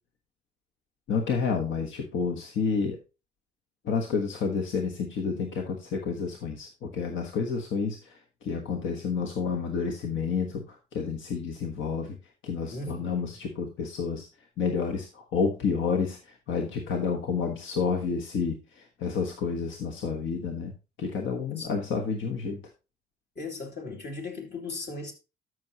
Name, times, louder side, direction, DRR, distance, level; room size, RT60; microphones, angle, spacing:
voice 1, 1.1-3.0 3.8-12.2 12.4-14.3 14.6-20.7 21.0-22.6, left 5 dB, 75° left, 1.3 m, -30 dB
voice 2, 12.7-13.4 21.5-21.7 23.3-25.1, left 3 dB, 60° left, 2.9 m, -37 dB
13.0 x 6.3 x 2.9 m
cardioid pair, 90°, 20 cm